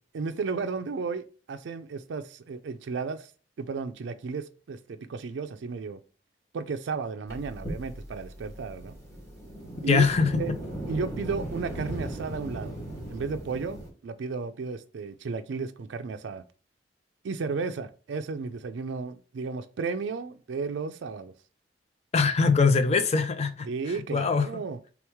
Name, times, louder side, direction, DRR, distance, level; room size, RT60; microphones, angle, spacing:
voice 1, 0.1-3.3 3.6-6.0 6.5-8.9 9.8-10.0 10.4-10.5 10.9-12.8 13.1-16.4 17.2-21.3 23.7-24.8, right 4 dB, 80° right, 0.4 m, -33 dB
sound 1, 7.3-13.9, right 1 dB, 15° left, 1.5 m, -37 dB
voice 2, 9.9-10.4 22.1-23.7 24.1-24.6, left 4 dB, 35° left, 0.4 m, -22 dB
3.4 x 3.0 x 3.5 m
head